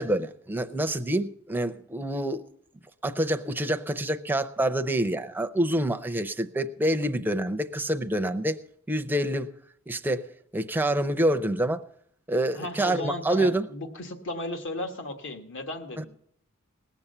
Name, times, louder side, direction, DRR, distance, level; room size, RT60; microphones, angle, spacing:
voice 1, 0.0-2.4 3.0-8.6 8.9-9.5 9.9-10.2 10.5-11.8 12.3-13.7 16.0-16.1, right 1 dB, 10° right, 0.5 m, -27 dB
voice 2, 12.5-16.1, left 2 dB, 60° left, 1.4 m, -35 dB
19.0 x 7.2 x 6.7 m
head